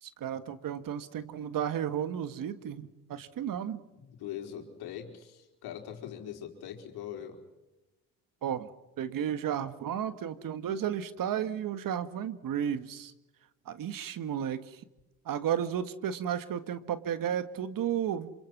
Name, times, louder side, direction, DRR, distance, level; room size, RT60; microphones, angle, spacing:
voice 1, 0.0-3.8 8.4-8.7 9.0-13.1 13.7-14.8 15.3-18.3, right 9 dB, 60° right, 12 dB, 1.8 m, -33 dB
voice 2, 3.9-7.4, left 10 dB, 75° left, 3 dB, 4.6 m, -42 dB
27.5 x 26.0 x 6.2 m, 1.0 s
supercardioid pair, 75°, 38 cm